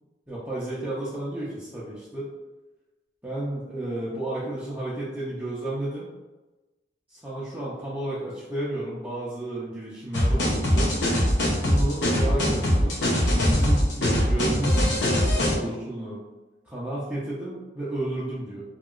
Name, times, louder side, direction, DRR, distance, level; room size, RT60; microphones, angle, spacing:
voice 1, 0.3-2.3 3.2-6.1 7.1-10.9 11.7-13.0 13.5-16.2 16.6-18.6, right 1 dB, 10° right, -9 dB, 0.5 m, -32 dB
sound 1, 10.1-15.6, equal, 85° left, 0.7 m, -22 dB
2.9 x 2.8 x 2.4 m, 1.1 s
head